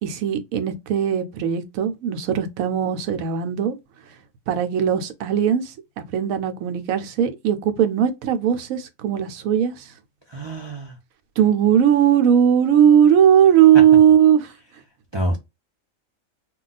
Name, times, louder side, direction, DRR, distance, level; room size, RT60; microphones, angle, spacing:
voice 1, 0.0-3.8 4.5-9.8 11.4-14.5, right 9 dB, 90° right, 1.0 m, -18 dB
voice 2, 10.3-10.9 15.1-15.4, right 1 dB, 35° right, 0.4 m, -26 dB
2.3 x 2.3 x 3.9 m
omnidirectional pair, 1.4 m